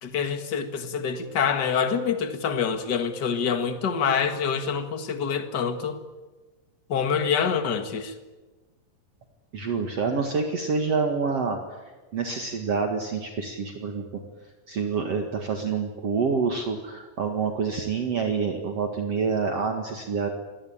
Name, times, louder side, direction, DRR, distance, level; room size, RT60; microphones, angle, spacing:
voice 1, 0.0-6.0 6.9-8.1, left 6 dB, 40° left, 8 dB, 2.0 m, -26 dB
voice 2, 9.5-11.6 12.1-14.2 14.7-20.3, right 5 dB, 50° right, 3 dB, 2.7 m, -27 dB
27.5 x 21.5 x 9.0 m, 1.2 s
omnidirectional pair, 3.9 m